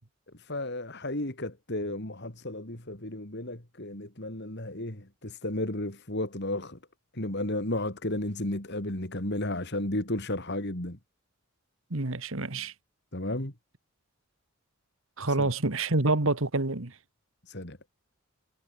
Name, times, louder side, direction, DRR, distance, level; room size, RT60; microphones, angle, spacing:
voice 1, 0.3-6.8 7.1-11.0 13.1-13.5 15.3-15.5 17.5-17.8, left 1 dB, 50° left, 3.3 m, -33 dB
voice 2, 11.9-12.7 15.2-16.9, right 2 dB, 65° right, 1.7 m, -27 dB
head